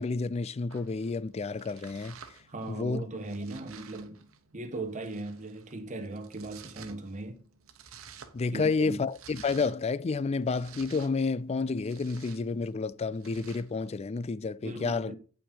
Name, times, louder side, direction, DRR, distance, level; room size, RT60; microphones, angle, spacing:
voice 1, 0.0-2.2 2.7-3.0 8.3-15.1, left 4 dB, 30° left, 0.3 m, -30 dB
Domestic sounds home sounds, 0.7-13.9, right 7 dB, 85° right, 1.1 m, -54 dB
voice 2, 2.5-4.3 4.5-7.4 8.5-9.0 14.6-15.2, right 2 dB, 35° right, 1.2 m, -38 dB
8.6 x 5.7 x 5.4 m
head